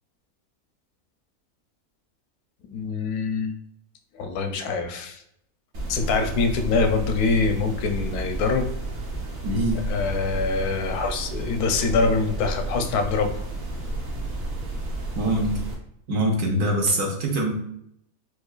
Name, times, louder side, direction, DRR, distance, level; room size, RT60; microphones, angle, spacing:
voice 1, 2.7-3.5 4.2-5.2 5.9-8.7 9.9-13.4, left 4 dB, 85° left, 5 dB, 1.1 m, -24 dB
sound 1, 5.7-15.8, right 2 dB, 55° right, 1.0 m, -31 dB
voice 2, 9.4-9.8 15.2-15.5 16.1-17.5, right 1 dB, 85° right, 0 dB, 1.4 m, -23 dB
4.6 x 2.3 x 2.3 m, 0.74 s
omnidirectional pair, 1.6 m